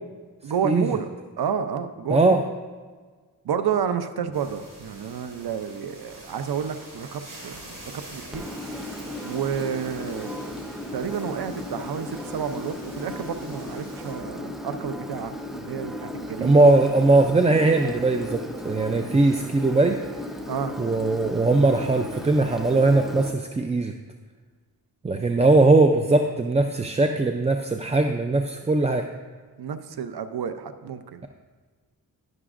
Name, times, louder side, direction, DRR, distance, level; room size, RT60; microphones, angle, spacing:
voice 1, 0.4-1.1 1.4-2.4 3.4-7.6 7.9-8.4 9.2-10.3 10.9-16.5 20.5-20.7 25.1-25.5 29.6-31.2, right 7 dB, 80° right, 9 dB, 0.6 m, -30 dB
voice 2, 2.1-2.4 16.4-20.0 20.8-23.9 25.0-29.0, right 2 dB, 20° right, 5 dB, 0.4 m, -20 dB
sound 1, 4.3-14.1, right 1 dB, 55° right, 2.7 m, -45 dB
Engine, 8.3-23.3, left 1 dB, ahead, 0.8 m, -36 dB
11.0 x 11.0 x 2.5 m, 1.5 s
wide cardioid pair, 105°, 38 cm